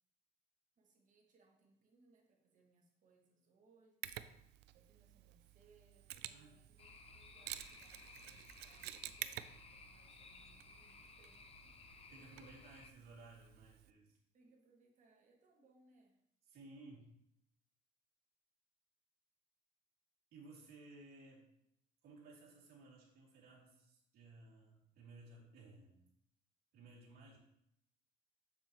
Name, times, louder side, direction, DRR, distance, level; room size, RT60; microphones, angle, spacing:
voice 1, 0.8-4.2 4.7-11.7 12.1-12.3 14.3-16.2, right 3 dB, 50° right, 0 dB, 1.9 m, -71 dB
Mechanisms, 4.0-13.9, right 13 dB, 80° right, 0.4 m, -52 dB
sound 1, 6.8-12.9, left 4 dB, 35° left, 0.6 m, -59 dB
voice 2, 12.1-14.2 16.5-17.1 20.3-21.5 22.0-26.0 26.7-27.4, right 2 dB, 65° right, -4 dB, 2.5 m, -58 dB
7.3 x 6.9 x 3.0 m, 0.76 s
cardioid pair, 110°, 17 cm